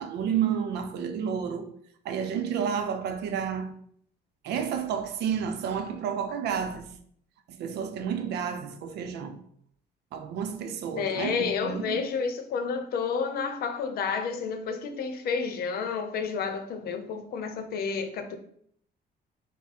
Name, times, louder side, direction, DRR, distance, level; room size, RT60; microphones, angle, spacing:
voice 1, 0.0-1.7 2.0-3.7 4.4-6.9 7.5-9.4 10.1-12.1, right 7 dB, 80° right, 0.6 m, -30 dB
voice 2, 11.0-18.4, left 5 dB, 65° left, 0.7 m, -30 dB
5.9 x 2.1 x 4.1 m
cardioid pair, 135°, 17 cm